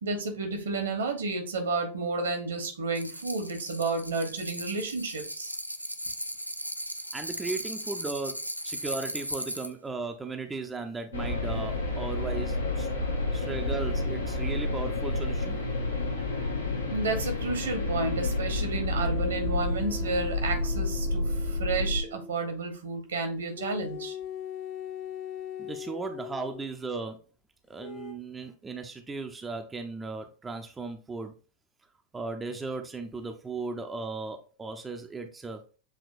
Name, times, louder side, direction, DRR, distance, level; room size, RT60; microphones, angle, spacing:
voice 1, 0.0-5.5 16.9-24.2, right 3 dB, 65° right, 5 dB, 1.1 m, -31 dB
sound 1, 2.9-9.7, equal, 90° right, 0.4 m, -37 dB
voice 2, 7.1-8.4 8.6-12.9 13.3-15.6 25.6-27.2 27.7-31.3 32.1-35.6, right 3 dB, 15° right, 5 dB, 0.5 m, -36 dB
sound 2, 11.1-22.0, left 2 dB, 75° left, 0.9 m, -30 dB
sound 3, 18.9-22.4 23.6-26.7 27.8-28.1, left 6 dB, 35° left, 0.6 m, -40 dB
7.0 x 2.9 x 2.5 m, 0.35 s
figure-of-eight pair, 90°, 0 cm